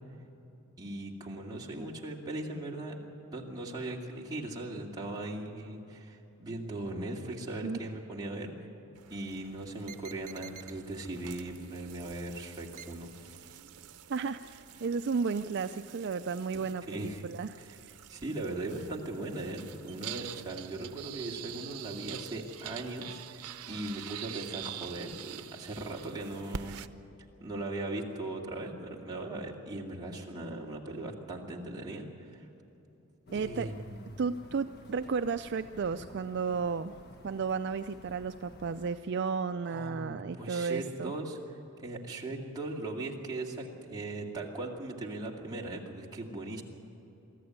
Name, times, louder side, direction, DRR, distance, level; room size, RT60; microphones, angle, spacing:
voice 1, 0.8-3.0 3.3-8.7 9.1-13.5 16.5-17.2 17.6-17.8 18.1-26.8 27.4-32.5 33.3-34.0 39.6-41.4 41.8-46.6, right 2 dB, 20° right, -3 dB, 2.4 m, -39 dB
sound 1, 9.0-26.9, right 9 dB, 85° right, 0.7 m, -46 dB
voice 2, 14.1-17.6 17.9-18.0 33.3-33.7 34.2-36.9 37.2-41.1, right 5 dB, 50° right, 9 dB, 0.4 m, -33 dB
sound 2, 33.3-39.0, left 1 dB, 45° left, 1.2 m, -52 dB
23.5 x 14.0 x 9.5 m, 2.9 s
head